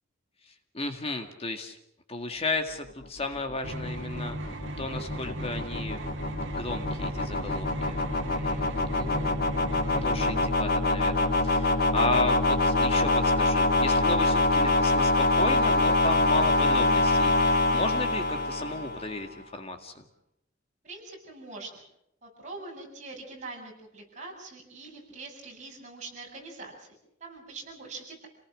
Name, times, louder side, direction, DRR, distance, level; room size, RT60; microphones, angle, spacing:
voice 1, 0.5-1.8 2.1-8.0 8.3-20.0, left 2 dB, 30° left, 6 dB, 2.0 m, -34 dB
sound 1, 3.0-19.2, left 2 dB, 50° left, 2.3 m, -25 dB
sound 2, 3.6-10.5, right 1 dB, 80° right, 2.1 m, -37 dB
voice 2, 20.8-21.8 22.2-28.3, right 3 dB, 40° right, -1 dB, 7.8 m, -43 dB
27.5 x 19.0 x 6.5 m, 0.77 s
head